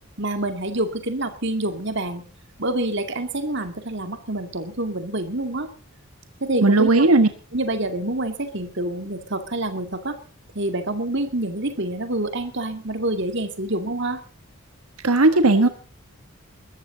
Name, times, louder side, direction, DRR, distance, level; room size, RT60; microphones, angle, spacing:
voice 1, 0.2-2.2 2.6-5.7 6.4-7.1 7.5-10.2 10.5-14.2, right 1 dB, 55° right, 7 dB, 2.4 m, -27 dB
voice 2, 6.6-7.3 15.0-15.7, right 2 dB, 85° right, 8 dB, 1.3 m, -16 dB
21.0 x 14.0 x 4.0 m, 0.37 s
head